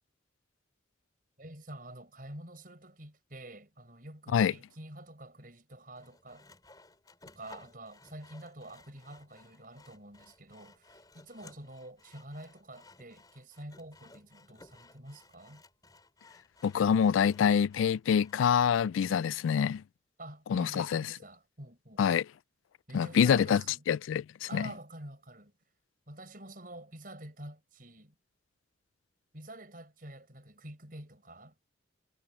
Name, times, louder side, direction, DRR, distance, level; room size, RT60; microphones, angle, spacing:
voice 1, 1.4-6.5 7.3-15.6 19.0-19.3 20.2-22.0 22.9-23.8 24.5-25.5 26.1-28.1 29.3-31.7, right 1 dB, 45° right, 6.2 m, -48 dB
Sawing, 6.0-18.4, left 2 dB, 20° left, 5.8 m, -58 dB
voice 2, 16.6-19.8 20.5-21.0 22.0-22.2 22.9-23.6 23.9-24.7, left 7 dB, 90° left, 0.3 m, -26 dB
head